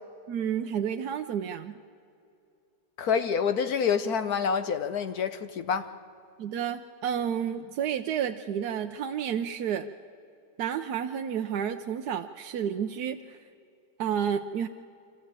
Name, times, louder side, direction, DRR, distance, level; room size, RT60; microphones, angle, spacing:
voice 1, 0.3-1.8 6.4-9.9 10.6-13.4 14.0-14.7, right 8 dB, 65° right, 1.1 m, -30 dB
voice 2, 3.0-5.9, left 6 dB, 65° left, 1.1 m, -27 dB
25.0 x 14.5 x 8.8 m
omnidirectional pair, 2.0 m